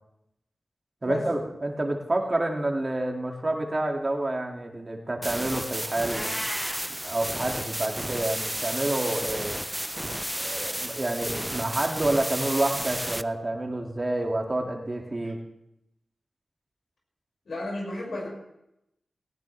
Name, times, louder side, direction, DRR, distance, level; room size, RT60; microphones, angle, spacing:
voice 1, 1.0-6.3 7.0-9.6 10.3-15.4, right 2 dB, 40° right, 2 dB, 2.3 m, -28 dB
sound 1, 5.2-13.2, equal, 10° right, 0.5 m, -32 dB
Meow, 6.0-6.9, left 1 dB, 35° left, 5.8 m, -35 dB
voice 2, 17.5-18.3, left 1 dB, 80° left, -2 dB, 6.0 m, -32 dB
18.0 x 17.0 x 3.4 m, 0.84 s
cardioid pair, 45°, 0 cm